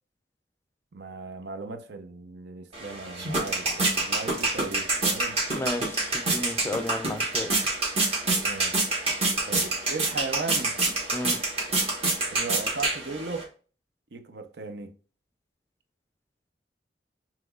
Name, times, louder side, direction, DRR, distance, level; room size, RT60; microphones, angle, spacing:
voice 1, 0.9-5.4 8.4-9.1 9.4-10.8 12.3-13.5 14.1-14.9, right 4 dB, 70° right, 0.6 m, -37 dB
sound 1, 2.7-13.4, right 2 dB, 35° right, 1.3 m, -27 dB
voice 2, 5.5-7.5 11.1-11.4, left 1 dB, 15° left, 0.4 m, -32 dB
5.7 x 3.0 x 2.3 m
head